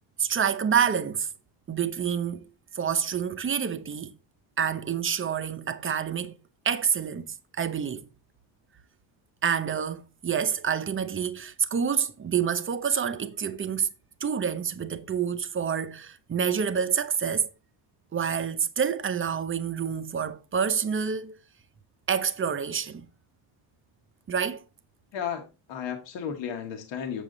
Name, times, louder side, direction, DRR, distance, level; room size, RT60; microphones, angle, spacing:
voice 1, 0.2-1.3 1.7-2.4 2.7-4.1 4.6-6.4 6.6-8.1 9.4-13.9 14.2-17.5 18.1-21.4 22.1-23.1 24.3-24.6, right 7 dB, 25° right, 0.7 m, -28 dB
voice 2, 25.1-27.2, left 8 dB, 65° left, 1.5 m, -34 dB
7.3 x 7.2 x 3.8 m
cardioid pair, 125°, 48 cm